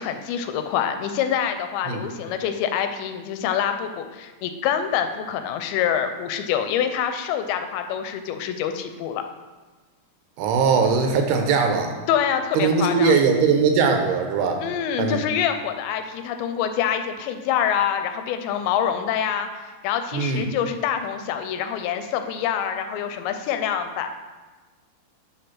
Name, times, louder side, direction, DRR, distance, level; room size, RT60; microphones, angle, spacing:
voice 1, 0.0-9.2 12.1-13.2 14.6-24.1, left 8 dB, 85° left, 7 dB, 2.4 m, -26 dB
voice 2, 10.4-11.9 12.6-14.6 15.0-15.2 20.1-20.5, right 5 dB, 85° right, 4 dB, 2.7 m, -20 dB
7.6 x 3.5 x 5.8 m, 1.3 s
omnidirectional pair, 4.5 m